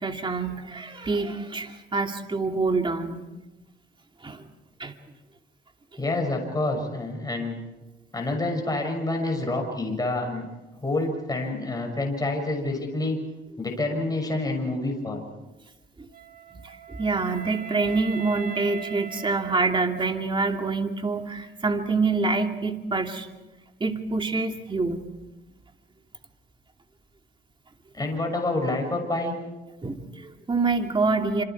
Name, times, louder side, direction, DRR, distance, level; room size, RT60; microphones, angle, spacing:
voice 1, 0.0-3.3 4.2-4.4 4.8-4.9 16.0-16.1 16.5-23.3 23.8-25.0 29.8-31.4, right 3 dB, 25° right, 4 dB, 2.7 m, -26 dB
voice 2, 6.0-7.6 8.1-10.5 10.8-13.2 13.6-15.3 27.9-29.4, left 2 dB, 20° left, 2 dB, 6.6 m, -27 dB
Wind instrument woodwind instrument, 16.1-20.3, right 8 dB, 45° right, 1.8 m, -40 dB
27.5 x 27.0 x 4.8 m, 1.1 s
cardioid pair, 90°, 20 cm